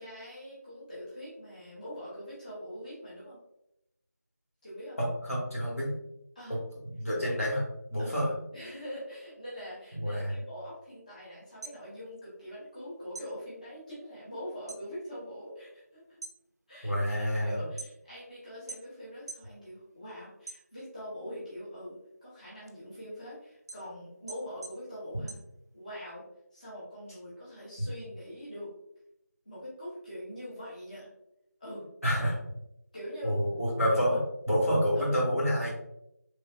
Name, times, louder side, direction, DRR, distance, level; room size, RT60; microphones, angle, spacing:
voice 1, 0.0-3.4 4.6-5.0 6.3-6.6 7.2-7.4 8.0-8.1 8.5-16.2 16.7-25.4 25.7-26.2 26.5-28.7 29.4-31.1 31.6-31.9 32.9-33.4 33.9-34.2 34.9-35.3, equal, 25° left, -11 dB, 0.8 m, -43 dB
voice 2, 5.0-5.9 6.9-7.6 7.9-8.3 10.0-10.3 16.8-17.6 32.0-32.4 33.2-34.2 34.5-35.7, equal, 55° left, -5 dB, 1.2 m, -28 dB
sound 1, 11.4-12.8 13.1-14.9 15.2-15.7 16.1-18.3 18.7-19.5 19.9-21.1 21.5-26.1, right 3 dB, 65° right, 0.4 m, -46 dB
3.2 x 2.5 x 2.3 m, 0.82 s
figure-of-eight pair, 170°, 9 cm